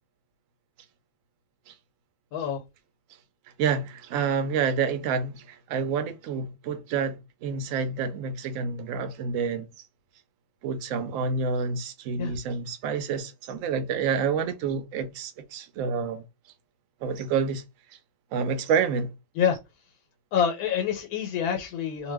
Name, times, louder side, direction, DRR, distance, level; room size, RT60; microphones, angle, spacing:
voice 1, 2.3-2.6 12.2-12.4 19.4-19.6 20.3-22.1, left 8 dB, 90° left, 1.1 m, -26 dB
voice 2, 3.6-9.7 10.6-16.2 17.0-17.6 18.3-19.1, right 5 dB, 70° right, 0.9 m, -28 dB
2.5 x 2.2 x 3.3 m
omnidirectional pair, 1.6 m